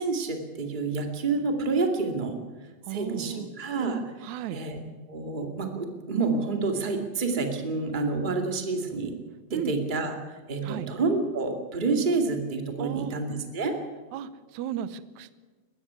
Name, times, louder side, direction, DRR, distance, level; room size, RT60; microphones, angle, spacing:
voice 1, 0.0-2.3 2.9-4.8 5.1-9.1 9.5-13.8, right 3 dB, 20° right, 4 dB, 1.5 m, -28 dB
voice 2, 2.9-3.5 4.2-4.6 9.5-9.8 10.6-10.9 12.8-13.1 14.1-15.3, right 11 dB, 85° right, 14 dB, 1.6 m, -35 dB
21.0 x 15.0 x 9.5 m, 1.3 s
omnidirectional pair, 4.7 m